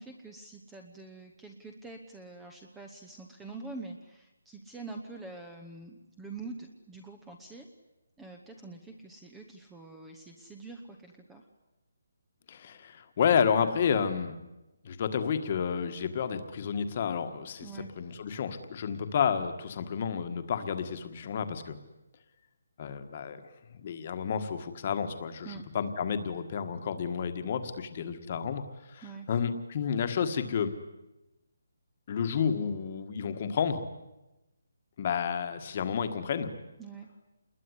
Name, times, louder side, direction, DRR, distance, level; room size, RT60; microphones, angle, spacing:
voice 1, 0.0-7.7 8.2-11.5 17.6-17.9 25.4-25.6 29.0-29.3 36.8-37.1, right 3 dB, 5° right, 4 dB, 0.9 m, -45 dB
voice 2, 12.5-14.4 14.8-17.7 18.0-21.8 22.8-23.4 23.8-25.5 25.7-28.6 28.9-30.7 32.1-33.8 35.0-36.5, left 7 dB, 25° left, 9 dB, 1.6 m, -30 dB
28.5 x 21.0 x 9.8 m, 1.0 s
hypercardioid pair, 180°, 0 cm